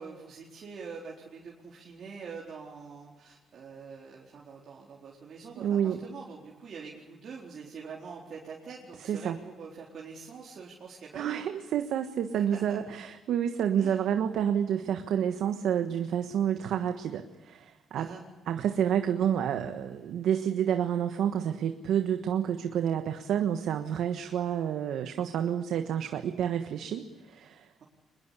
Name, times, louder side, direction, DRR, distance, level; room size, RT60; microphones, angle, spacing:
voice 1, 0.0-11.4 12.4-12.8 13.8-14.0 17.9-18.2, right 5 dB, 55° right, -3 dB, 4.1 m, -44 dB
voice 2, 5.6-6.0 9.1-9.4 11.1-18.1 18.5-27.8, right 9 dB, 75° right, 7 dB, 1.4 m, -29 dB
23.5 x 21.5 x 8.3 m, 1.2 s
cardioid pair, 90°, 0 cm